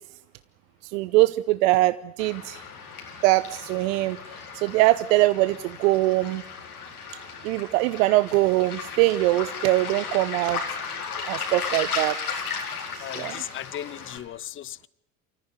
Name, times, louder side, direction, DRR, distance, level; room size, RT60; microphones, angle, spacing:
voice 1, 0.8-2.6 3.2-6.4 7.4-10.6 11.3-12.2 12.9-13.4, right 18 dB, 65° right, 0.8 m, -22 dB
Waves surf, 2.2-14.2, left 5 dB, 85° left, 4.4 m, -35 dB
voice 2, 13.0-14.9, left 11 dB, 30° left, 0.8 m, -37 dB
28.0 x 14.0 x 9.4 m
hypercardioid pair, 70°, 43 cm